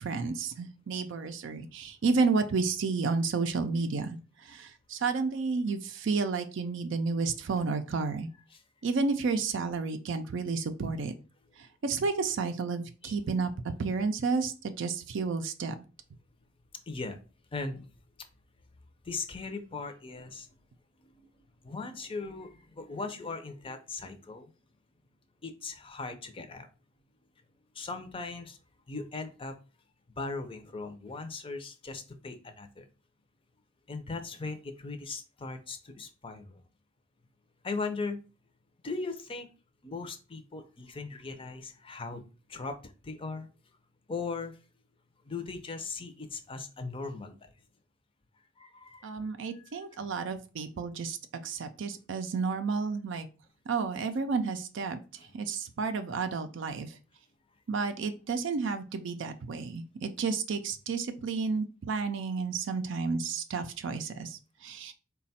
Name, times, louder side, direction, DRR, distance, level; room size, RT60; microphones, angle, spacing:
voice 1, 0.0-4.1 4.5-8.3 8.8-11.1 11.8-13.5 13.8-14.5 14.8-15.7 49.0-51.2 51.4-53.3 53.7-55.0 55.3-56.9 57.7-64.9, right 4 dB, 65° right, 8 dB, 0.4 m, -31 dB
voice 2, 16.9-17.2 17.5-17.9 19.0-20.6 21.0-21.3 21.6-24.5 25.4-26.7 27.7-28.6 28.9-29.6 30.2-32.9 33.9-36.6 37.6-38.2 38.8-39.5 39.8-42.2 42.5-43.5 44.1-44.6 45.2-47.5 48.6-49.1 49.4-49.9 55.2-55.3, left 3 dB, 25° left, 8 dB, 0.5 m, -39 dB
4.1 x 2.2 x 4.1 m, 0.34 s
head